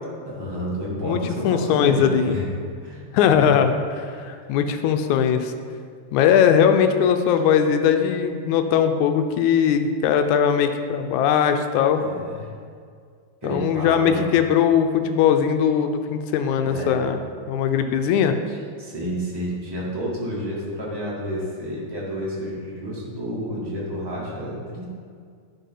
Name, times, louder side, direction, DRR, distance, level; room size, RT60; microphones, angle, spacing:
voice 1, 0.2-2.5 2.8-3.6 4.1-4.3 11.9-12.5 13.4-14.3 16.6-17.1 18.5-24.8, equal, 10° right, -6 dB, 1.3 m, -30 dB
voice 2, 1.0-2.4 3.1-3.7 4.2-5.5 6.1-12.0 13.4-17.2 17.5-18.4, left 8 dB, 85° left, 7 dB, 2.0 m, -20 dB
11.5 x 4.4 x 5.5 m, 2.1 s
omnidirectional pair, 3.3 m